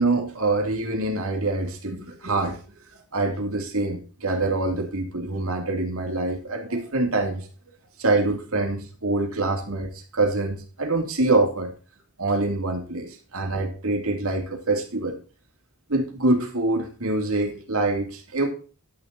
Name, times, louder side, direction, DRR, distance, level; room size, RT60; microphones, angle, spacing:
voice 1, 0.0-2.6 3.1-7.5 8.0-11.7 12.2-15.2 15.9-18.5, right 2 dB, 65° right, 2.8 m, -25 dB
11.5 x 7.1 x 4.0 m
head